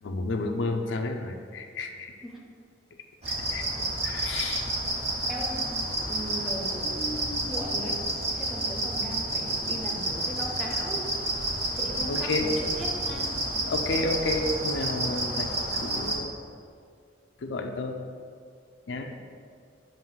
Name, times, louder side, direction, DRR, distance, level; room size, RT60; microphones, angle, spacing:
voice 1, 0.0-2.1 3.5-3.6 4.0-4.7 12.1-12.5 13.7-16.3 17.4-18.0 18.9-19.1, left 2 dB, 75° left, 4 dB, 0.5 m, -31 dB
sound 1, 3.2-16.2, right 1 dB, 35° right, 0.9 m, -30 dB
voice 2, 5.3-5.7 6.0-8.0 8.3-11.1 11.8-13.3, equal, ahead, -2 dB, 0.8 m, -38 dB
sound 2, 11.2-14.5 14.8-14.9, left 1 dB, 85° right, 1.1 m, -44 dB
7.6 x 2.6 x 5.5 m, 2.2 s
head